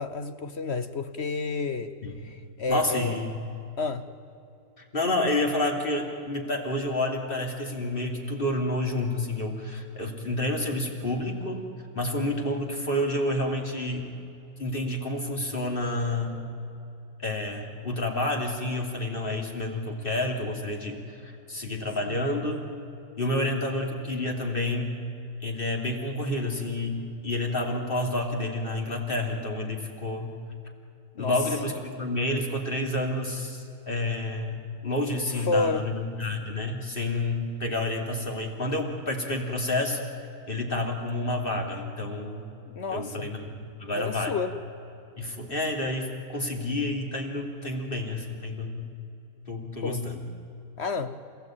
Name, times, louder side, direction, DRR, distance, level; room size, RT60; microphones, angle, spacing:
voice 1, 0.0-1.9 2.2-3.3 3.8-4.1 22.0-22.2 23.3-23.5 31.2-31.4 35.4-35.8 42.7-43.3 43.9-44.6 49.8-50.0 50.8-51.2, left 3 dB, 50° left, 11 dB, 1.0 m, -30 dB
voice 2, 2.7-3.3 4.8-11.7 11.9-14.1 14.6-16.5 17.2-22.7 23.2-24.9 25.4-30.3 31.1-34.6 34.8-40.0 40.5-42.5 42.9-44.3 45.2-48.8 49.5-50.2, left 1 dB, 30° left, 2 dB, 3.2 m, -29 dB
28.0 x 16.5 x 9.2 m, 2.8 s
omnidirectional pair, 1.7 m